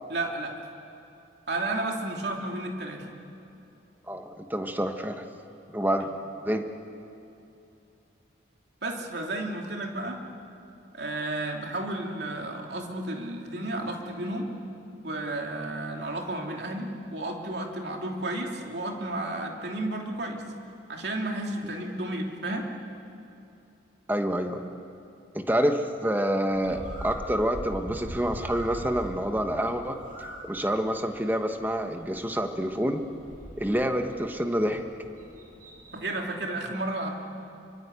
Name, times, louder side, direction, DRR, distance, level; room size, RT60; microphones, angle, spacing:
voice 1, 0.1-0.6 1.5-3.1 8.8-10.2 10.9-14.5 15.0-20.4 20.9-22.7 35.9-37.1, right 2 dB, 65° right, 1 dB, 3.0 m, -32 dB
voice 2, 4.1-5.2 5.7-6.1 6.4-6.7 24.1-24.6 25.3-30.0 30.4-33.0 33.6-34.8, equal, 10° right, 5 dB, 1.4 m, -27 dB
Bird, 26.5-36.1, equal, 45° right, 7.2 m, -43 dB
25.5 x 24.0 x 8.4 m, 2.8 s
head